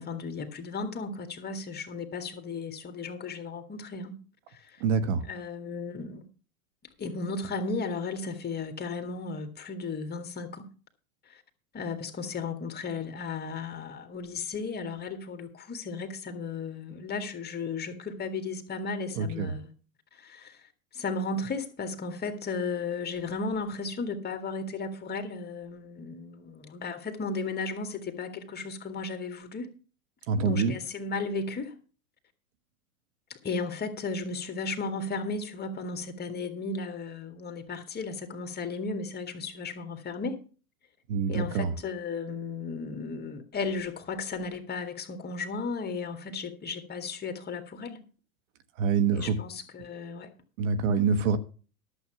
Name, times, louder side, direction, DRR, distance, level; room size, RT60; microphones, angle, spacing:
voice 1, 0.0-4.2 4.5-4.8 5.2-6.2 7.0-10.7 11.3-11.4 11.7-19.7 20.1-20.6 20.9-29.7 30.4-31.7 33.4-40.4 41.3-48.0 49.1-50.3 50.9-51.1, left 4 dB, 25° left, 2.0 m, -35 dB
voice 2, 4.8-5.3 19.2-19.5 30.3-30.7 41.1-41.7 48.8-49.4 50.6-51.4, right 5 dB, 60° right, 1.3 m, -25 dB
11.5 x 7.6 x 5.9 m
hypercardioid pair, 100°, 42 cm